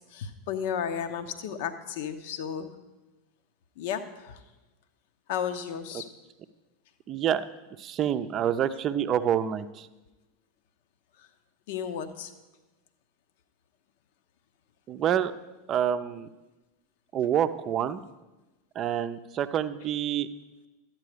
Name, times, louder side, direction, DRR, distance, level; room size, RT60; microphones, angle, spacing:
voice 1, 0.1-2.7 3.8-4.4 5.3-6.1 11.2-11.3 11.7-12.3, left 8 dB, 60° left, 9 dB, 0.9 m, -33 dB
voice 2, 7.1-7.4 7.8-9.9 14.9-15.3 15.7-16.3 17.1-18.0 18.7-20.3, right 9 dB, 35° right, 11 dB, 0.6 m, -27 dB
12.5 x 9.0 x 5.0 m, 1.1 s
figure-of-eight pair, 85°, 0 cm